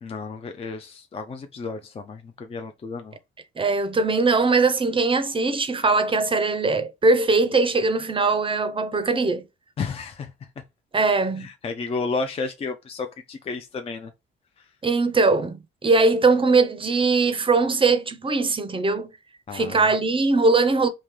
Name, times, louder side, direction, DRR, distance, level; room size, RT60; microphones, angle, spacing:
voice 1, 0.0-3.2 9.8-10.3 11.4-14.1 19.5-19.9, left 4 dB, 30° left, 0.4 m, -32 dB
voice 2, 3.6-9.4 10.9-11.5 14.8-19.1 19.5-20.9, right 3 dB, 25° right, 0.5 m, -21 dB
3.7 x 2.7 x 3.1 m
cardioid pair, 90°, 20 cm